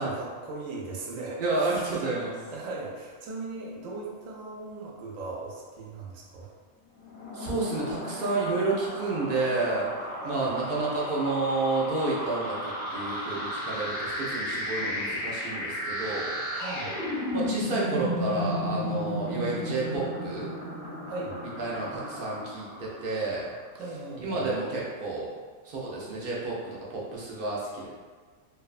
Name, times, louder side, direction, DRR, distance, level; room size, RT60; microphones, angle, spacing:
voice 1, 0.0-1.9 2.4-6.5 10.2-10.5 16.5-16.9 21.1-21.3 23.8-24.4, right 3 dB, 80° right, -3 dB, 0.9 m, -38 dB
voice 2, 1.4-2.4 7.3-9.9 10.2-16.3 17.3-20.5 21.6-23.5 24.2-25.3 25.6-27.9, right 3 dB, 60° right, -5 dB, 0.6 m, -30 dB
sound 1, 7.0-23.4, equal, 50° left, 0.6 m, -34 dB
2.5 x 2.2 x 2.3 m, 1.5 s
omnidirectional pair, 1.3 m